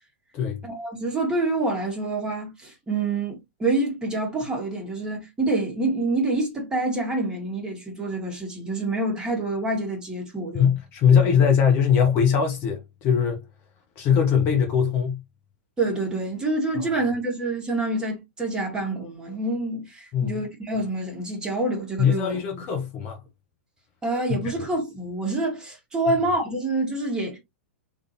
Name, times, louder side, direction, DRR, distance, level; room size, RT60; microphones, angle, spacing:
voice 1, 0.6-10.6 11.2-11.3 15.8-22.3 24.0-27.4, right 2 dB, 10° right, 2.1 m, -27 dB
voice 2, 10.5-13.4 14.0-15.2 16.8-16.9 20.1-20.4 22.0-23.2 24.3-24.4, left 7 dB, 35° left, 1.1 m, -21 dB
3.7 x 3.5 x 2.9 m
figure-of-eight pair, 100°, 7 cm